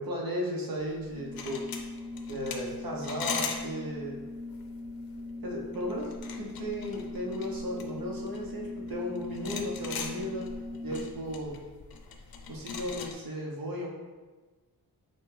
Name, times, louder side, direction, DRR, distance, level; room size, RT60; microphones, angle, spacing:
voice 1, 0.0-1.6 2.3-4.2 5.4-10.5 10.8-11.5 12.5-13.9, equal, 65° right, -2 dB, 0.9 m, -35 dB
sound 1, 0.9-13.1, left 5 dB, 70° left, 0.5 m, -40 dB
Organ, 1.1-11.4, left 2 dB, 35° right, 0.4 m, -41 dB
5.3 x 2.2 x 3.2 m, 1.3 s
wide cardioid pair, 170°, 37 cm